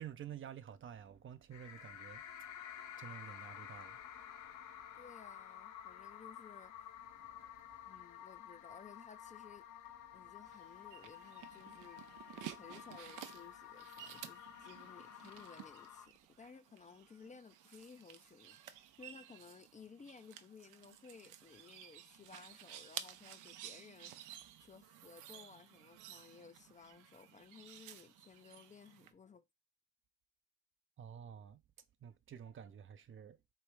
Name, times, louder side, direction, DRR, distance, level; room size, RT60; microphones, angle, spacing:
voice 1, 0.0-5.1 7.0-8.0 9.9-10.3 11.5-11.6 12.4-12.6 19.0-19.1 31.0-31.6 32.0-33.4, right 9 dB, 45° right, 0.5 m, -52 dB
sound 1, 1.5-16.1, left 10 dB, 70° left, 0.8 m, -52 dB
voice 2, 4.9-7.0 7.8-9.6 10.1-12.0 12.5-29.4 32.6-32.7, left 5 dB, 25° left, 0.4 m, -58 dB
sound 2, 10.5-29.1, right 11 dB, 90° right, 0.6 m, -53 dB
3.2 x 3.1 x 4.6 m
cardioid pair, 90°, 30 cm